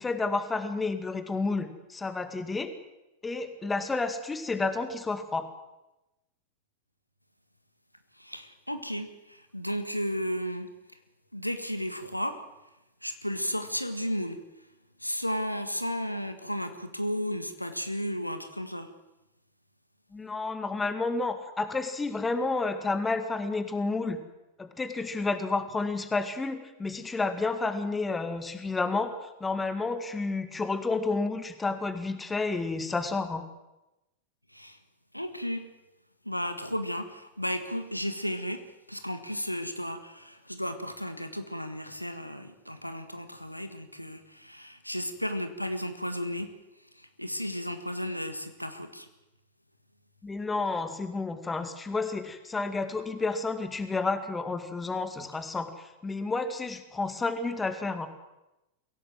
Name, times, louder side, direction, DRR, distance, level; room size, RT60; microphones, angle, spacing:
voice 1, 0.0-2.7 3.2-5.5 20.1-24.2 24.6-33.4 50.2-58.1, left 3 dB, 10° left, 9 dB, 2.2 m, -30 dB
voice 2, 8.2-10.7 11.3-12.4 13.0-14.4 15.0-18.9 34.5-34.8 35.1-35.7 36.3-38.6 38.9-46.5 47.0-49.1, equal, 90° left, 8 dB, 1.7 m, -34 dB
23.0 x 17.0 x 7.8 m, 0.96 s
figure-of-eight pair, 90°, 0 cm